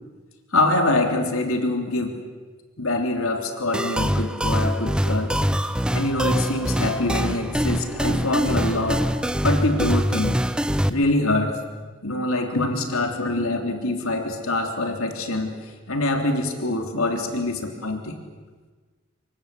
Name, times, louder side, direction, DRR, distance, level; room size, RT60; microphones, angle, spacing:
voice 1, 0.5-2.2 2.8-5.3 5.9-9.1 9.4-10.4 10.9-11.5 12.0-18.2, left 2 dB, 80° left, 5 dB, 3.4 m, -24 dB
sound 1, 3.7-10.9, equal, 5° right, 0.7 m, -24 dB
25.5 x 23.5 x 8.5 m, 1.4 s
head